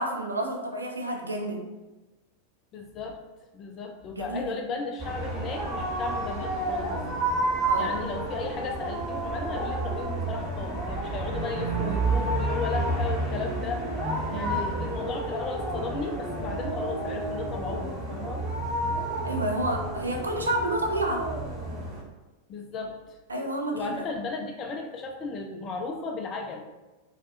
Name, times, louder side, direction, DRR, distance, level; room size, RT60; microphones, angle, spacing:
voice 1, 0.0-1.6 4.1-4.5 7.6-8.0 14.3-14.7 19.2-21.2 23.3-24.0, right 1 dB, 75° right, 1 dB, 0.4 m, -30 dB
voice 2, 2.7-3.2 3.5-7.0 7.8-13.9 14.3-18.4 22.5-23.0 23.7-26.6, left 4 dB, 30° left, 3 dB, 0.3 m, -35 dB
sound 1, 5.0-22.0, right 2 dB, 25° right, 1.1 m, -30 dB
2.4 x 2.3 x 2.4 m, 1.1 s
figure-of-eight pair, 90°, 0 cm